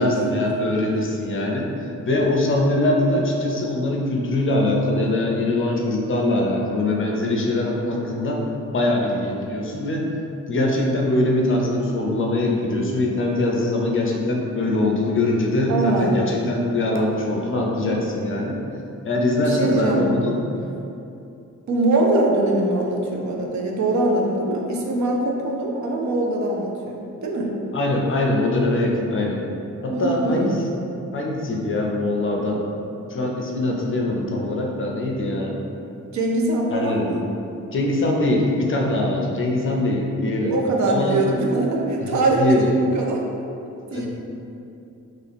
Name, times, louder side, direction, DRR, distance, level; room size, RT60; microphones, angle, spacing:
voice 1, 0.0-8.4 8.7-10.1 10.5-18.6 19.0-20.4 27.7-29.4 29.8-30.7 31.1-32.7 33.1-35.5 36.7-37.1 37.7-40.5 40.9-41.2 42.1-42.7 43.9-44.1, left 2 dB, 45° left, 0 dB, 0.5 m, -22 dB
voice 2, 15.7-16.3 19.4-20.0 21.7-27.5 29.9-30.7 36.1-37.3 40.5-43.2 43.9-44.1, right 2 dB, 70° right, 0 dB, 0.6 m, -22 dB
3.1 x 2.8 x 4.1 m, 2.7 s
wide cardioid pair, 125°, 30 cm